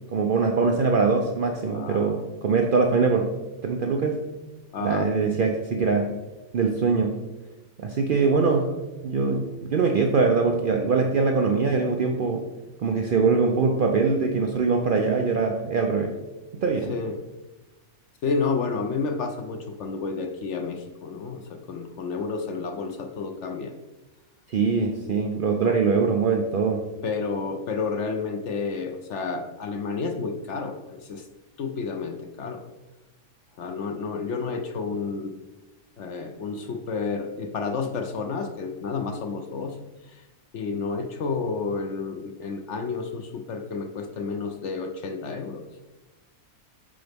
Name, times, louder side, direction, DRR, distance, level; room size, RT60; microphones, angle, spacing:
voice 1, 0.1-3.3 3.6-4.2 4.8-6.1 6.5-7.1 7.8-8.7 9.0-12.4 12.8-16.1 16.5-16.9 24.5-26.8, right 4 dB, 85° right, 3 dB, 0.4 m, -22 dB
voice 2, 1.7-2.2 4.7-5.1 8.3-8.5 16.9-17.2 18.2-23.7 25.6-25.8 27.0-31.3 31.6-32.6 33.6-35.3 36.0-39.8 40.1-40.2 40.5-45.6, left 4 dB, 65° left, 5 dB, 0.8 m, -30 dB
8.8 x 3.9 x 3.4 m, 1.1 s
omnidirectional pair, 1.5 m